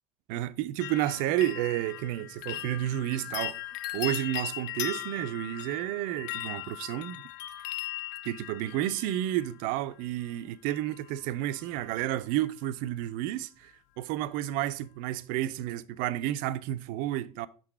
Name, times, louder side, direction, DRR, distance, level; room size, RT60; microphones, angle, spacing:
voice 1, 0.3-3.6 3.9-7.2 8.2-17.5, right 14 dB, 45° right, 0.4 m, -31 dB
sound 1, 0.8-9.7 10.7-11.2 11.4-12.0 12.3-12.4, left 13 dB, 50° left, 0.4 m, -39 dB
6.1 x 3.8 x 4.2 m
figure-of-eight pair, 75°, 19 cm